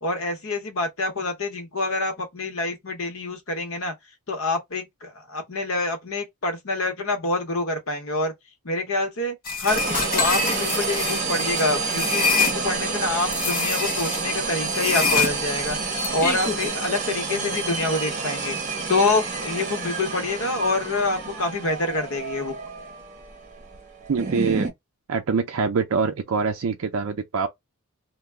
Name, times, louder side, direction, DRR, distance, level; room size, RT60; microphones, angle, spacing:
voice 1, 0.0-3.9 4.3-8.3 8.6-15.8 16.1-18.6 18.9-22.5, left 2 dB, 65° left, 0.9 m, -26 dB
sound 1, 9.5-12.6 13.3-14.2 14.7-16.7, left 5 dB, 40° left, 0.6 m, -25 dB
sound 2, 9.7-24.7, right 4 dB, 35° right, 0.7 m, -29 dB
voice 2, 24.1-24.7 25.1-27.5, right 5 dB, 65° right, 0.4 m, -24 dB
2.2 x 2.0 x 3.2 m
head